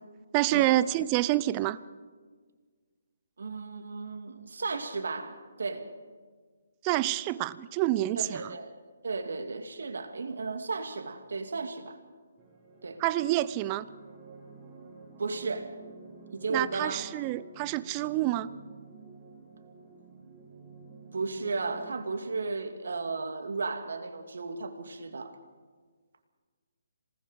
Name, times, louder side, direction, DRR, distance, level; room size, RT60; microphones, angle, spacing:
voice 1, 0.3-1.8 6.8-8.6 13.0-13.9 16.5-18.5, right 15 dB, 25° right, 17 dB, 0.7 m, -27 dB
voice 2, 3.4-5.9 8.2-8.7 9.0-12.0 12.8-13.0 15.2-15.7 16.3-17.0 21.1-25.4, right 4 dB, 70° right, 7 dB, 2.5 m, -34 dB
sound 1, 12.4-21.9, right 4 dB, 5° right, 6.0 m, -50 dB
27.0 x 19.0 x 5.4 m, 1.5 s
figure-of-eight pair, 145°, 0 cm